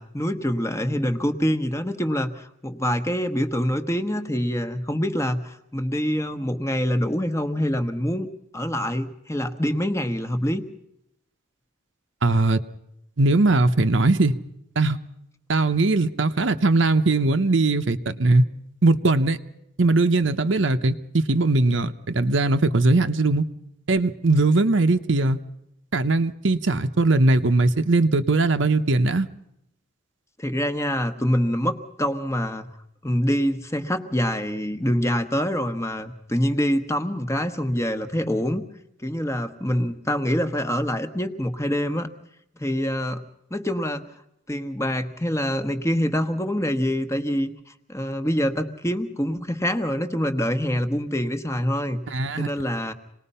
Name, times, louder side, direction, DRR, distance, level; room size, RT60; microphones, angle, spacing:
voice 1, 0.0-8.3 8.5-10.6 30.4-32.7 33.0-38.7 39.0-42.1 42.6-43.2 43.5-44.0 44.5-47.5 47.9-52.0 52.4-52.9, equal, 15° left, 9 dB, 1.2 m, -25 dB
voice 2, 12.2-12.6 13.2-14.4 14.8-15.0 15.5-18.4 18.8-19.4 19.8-23.4 23.9-25.4 25.9-29.3 52.1-52.5, right 2 dB, 65° right, 8 dB, 0.9 m, -20 dB
27.0 x 19.5 x 5.6 m, 0.79 s
head